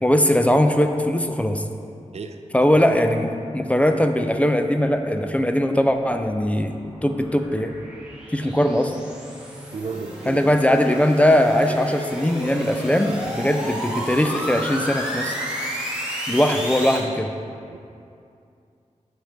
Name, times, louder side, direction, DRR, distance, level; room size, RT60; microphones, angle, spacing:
voice 1, 0.0-1.6 2.5-7.7 8.3-8.9 10.3-15.4 16.3-17.3, left 1 dB, 10° left, 6 dB, 0.3 m, -20 dB
sound 1, 6.6-17.0, equal, 5° right, 1.2 m, -32 dB
voice 2, 9.7-10.4 17.7-17.8, right 4 dB, 55° right, 7 dB, 0.4 m, -33 dB
5.9 x 5.1 x 5.6 m, 2.5 s
wide cardioid pair, 120°, 13 cm